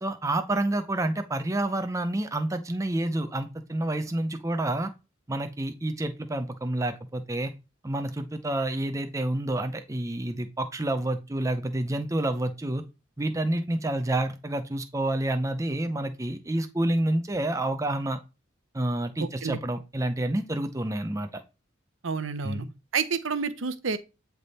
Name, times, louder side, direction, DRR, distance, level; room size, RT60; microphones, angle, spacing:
voice 1, 0.0-4.9 5.3-7.5 7.8-12.8 13.2-18.2 18.7-21.4 22.4-22.7, right 1 dB, 15° right, 0.6 m, -29 dB
voice 2, 19.2-19.6 22.0-22.7 22.9-24.0, right 5 dB, 70° right, 0.7 m, -29 dB
8.6 x 3.5 x 4.1 m
head